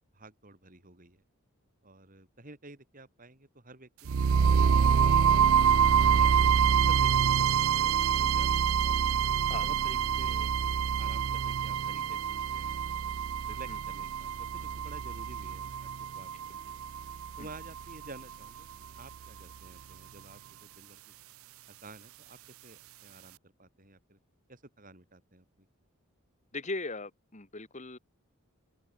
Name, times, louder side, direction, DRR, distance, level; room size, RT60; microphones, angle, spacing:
voice 1, 0.1-1.2 1.8-4.2 4.5-5.4 6.1-6.6 6.9-8.9 9.6-13.1 13.4-16.7 17.4-21.0 21.8-24.2 24.5-25.7, right 2 dB, 40° right, 3.4 m, -51 dB
sound 1, 4.1-18.1, right 7 dB, 70° right, 0.5 m, -26 dB
voice 2, 26.5-28.0, left 3 dB, 35° left, 2.0 m, -39 dB
head